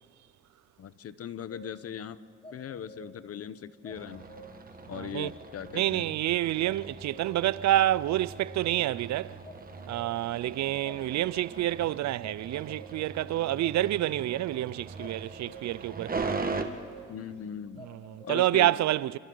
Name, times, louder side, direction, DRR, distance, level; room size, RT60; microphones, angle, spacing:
voice 1, 0.8-2.2 2.5-4.2 4.9-6.2 17.1-17.9 18.2-18.8, left 8 dB, 50° left, 0.9 m, -39 dB
sound 1, 1.5-2.0 2.4-3.4 3.8-4.8 5.2-6.1 6.6-7.7 8.0-9.0 9.4-10.5 10.8-11.8 12.2-13.2 13.6-14.4 15.0-15.9 16.4-17.4 17.8-18.5, right 1 dB, 20° left, 6.6 m, -50 dB
sound 2, 3.9-16.6, right 4 dB, 30° right, 1.6 m, -40 dB
voice 2, 4.9-5.3 5.7-9.4 9.9-16.4 17.9-19.2, right 14 dB, 65° right, 0.5 m, -28 dB
29.0 x 26.5 x 3.9 m
cardioid pair, 90°, 30 cm